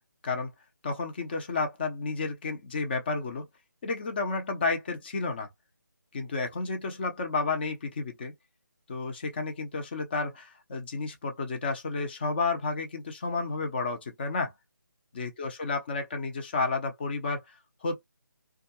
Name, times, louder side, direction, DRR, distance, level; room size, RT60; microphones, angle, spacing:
voice 1, 0.8-3.5 3.8-5.5 6.1-8.3 8.9-14.5 15.1-17.4 17.8-18.0, left 3 dB, 30° left, 0.7 m, -31 dB
2.3 x 2.1 x 2.8 m
figure-of-eight pair, 155°, 11 cm